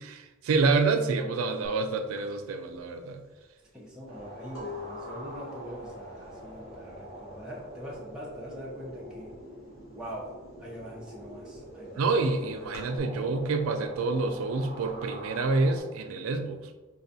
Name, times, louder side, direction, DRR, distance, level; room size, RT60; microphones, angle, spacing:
voice 1, 0.0-3.2 12.0-16.8, right 3 dB, 80° right, 7 dB, 0.3 m, -27 dB
sound 1, 1.6-1.8 2.2-7.8 8.1-8.6 8.9-10.0 10.4-13.0, left 4 dB, 80° left, 1.0 m, -46 dB
voice 2, 3.7-9.3 9.9-10.3 10.6-12.5, equal, 5° right, -5 dB, 0.5 m, -43 dB
sound 2, 4.1-15.8, equal, 30° right, 0.8 m, -45 dB
4.2 x 2.3 x 2.6 m, 1.2 s
head